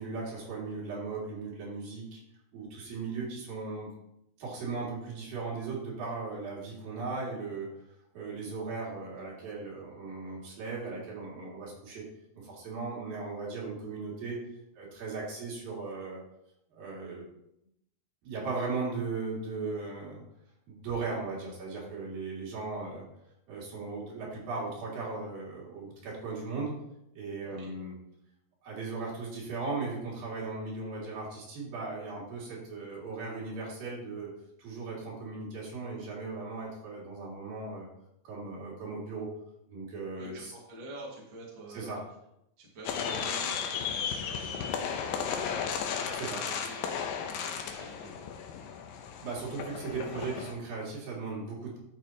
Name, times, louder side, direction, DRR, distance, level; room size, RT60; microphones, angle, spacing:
voice 1, 0.0-2.2 2.5-3.9 4.4-7.7 8.1-12.0 12.4-14.4 14.8-16.2 16.7-17.3 18.2-20.2 20.7-23.0 23.5-26.7 27.1-27.9 28.6-34.3 34.6-37.9 38.2-39.3 39.7-40.5 41.7-42.0 46.1-46.4 49.2-51.8, right 4 dB, 70° right, -4 dB, 4.3 m, -37 dB
voice 2, 40.2-42.0 42.6-48.6, right 1 dB, 35° right, -4 dB, 2.3 m, -47 dB
sound 1, 42.8-50.5, left 7 dB, 80° left, 2.5 m, -34 dB
12.5 x 7.0 x 3.0 m, 0.80 s
omnidirectional pair, 4.2 m